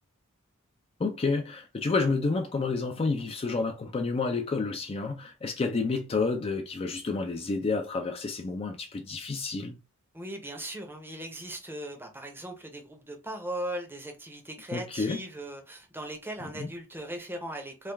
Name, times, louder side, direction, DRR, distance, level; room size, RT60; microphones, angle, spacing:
voice 1, 1.0-9.8 14.7-15.2 16.6-16.7, left 4 dB, 30° left, 0.4 m, -29 dB
voice 2, 10.1-17.9, right 1 dB, 10° right, 0.6 m, -38 dB
3.2 x 2.2 x 3.3 m
head